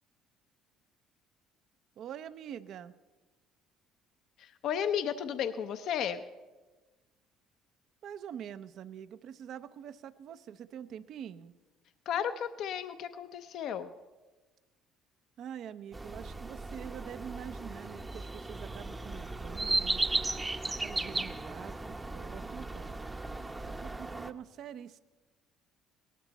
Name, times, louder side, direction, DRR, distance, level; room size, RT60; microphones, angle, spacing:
voice 1, 2.0-2.9 8.0-11.5 15.4-20.1 20.6-21.7 22.1-23.0 23.6-25.0, right 9 dB, 65° right, 14 dB, 0.6 m, -45 dB
voice 2, 4.4-6.2 12.1-13.9, left 8 dB, 65° left, 9 dB, 0.6 m, -33 dB
sound 1, 15.9-24.3, right 2 dB, 15° right, 0.7 m, -36 dB
18.0 x 13.0 x 4.1 m, 1.2 s
supercardioid pair, 85°, 0 cm